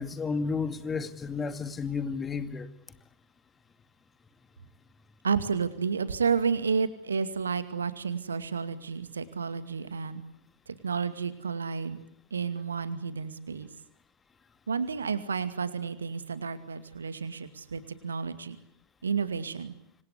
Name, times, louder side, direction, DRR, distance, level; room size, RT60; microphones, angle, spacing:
voice 1, 0.0-2.7, left 5 dB, 15° left, 2.2 m, -32 dB
voice 2, 5.2-10.2 10.7-12.0 12.3-13.7 14.7-18.6 19.0-19.7, right 5 dB, 70° right, 2.3 m, -31 dB
27.0 x 26.0 x 8.4 m
figure-of-eight pair, 90°, 0 cm